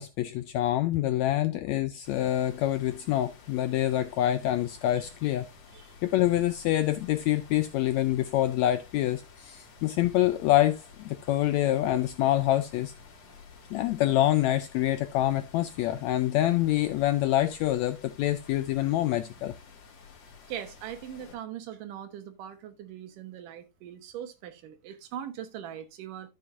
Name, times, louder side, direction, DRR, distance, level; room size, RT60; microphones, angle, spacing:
voice 1, 0.0-5.5 6.0-12.9 13.7-19.5, left 14 dB, 80° left, 1.6 m, -26 dB
sound 1, 2.0-21.4, left 5 dB, 55° left, 3.2 m, -52 dB
voice 2, 20.5-26.3, right 10 dB, 80° right, 2.8 m, -41 dB
13.5 x 6.3 x 2.6 m
omnidirectional pair, 3.7 m